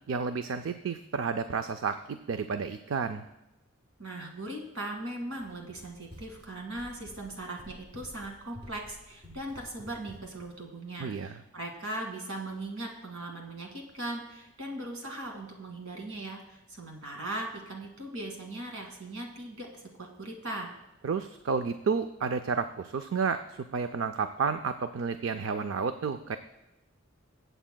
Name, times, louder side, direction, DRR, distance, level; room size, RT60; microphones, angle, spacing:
voice 1, 0.1-3.2 11.0-11.4 21.0-26.4, right 5 dB, 70° right, 10 dB, 0.4 m, -31 dB
voice 2, 4.0-20.7, right 1 dB, 85° right, 1 dB, 2.1 m, -39 dB
Run, 5.3-10.5, equal, 25° right, 1.7 m, -51 dB
23.0 x 8.0 x 2.2 m, 0.94 s
head